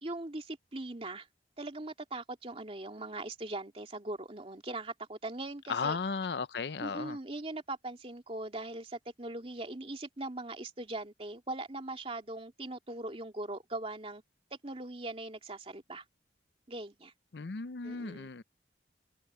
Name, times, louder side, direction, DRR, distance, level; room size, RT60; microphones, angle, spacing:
voice 1, 0.0-1.3 1.6-6.0 6.8-14.2 14.6-16.0 16.7-17.1 17.8-18.3, right 2 dB, 35° right, 2.4 m, -40 dB
voice 2, 5.7-7.2 17.3-18.4, left 5 dB, 70° left, 0.6 m, -35 dB
head